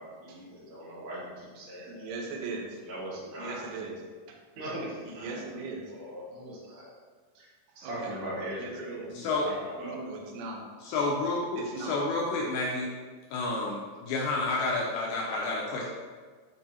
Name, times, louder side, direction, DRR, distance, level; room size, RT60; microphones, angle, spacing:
voice 1, 0.0-2.2 2.8-3.7 4.5-6.9 7.3-7.5 7.7-10.0, right 1 dB, 65° right, -6 dB, 1.3 m, -40 dB
voice 2, 1.9-2.7 3.4-4.0 4.3-4.4 5.0-5.8 7.8-8.1 8.6-9.1 9.8-10.7 11.6-12.0, right 4 dB, 90° right, 0 dB, 1.9 m, -39 dB
voice 3, 9.1-9.5 10.8-12.9 13.3-15.8, left 3 dB, 80° left, -3 dB, 2.3 m, -30 dB
6.7 x 2.6 x 2.7 m, 1.5 s
omnidirectional pair, 4.5 m